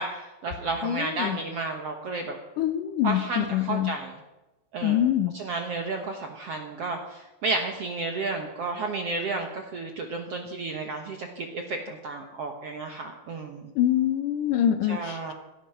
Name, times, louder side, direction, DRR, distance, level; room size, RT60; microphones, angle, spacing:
voice 1, 0.0-2.4 3.0-4.2 4.7-5.1 5.3-13.7 14.8-15.3, right 3 dB, 65° right, 4 dB, 1.6 m, -32 dB
voice 2, 0.8-1.4 2.6-4.0 4.8-5.3 13.8-15.3, left 11 dB, 70° left, 9 dB, 2.3 m, -25 dB
17.0 x 13.5 x 5.9 m, 1.1 s
omnidirectional pair, 4.2 m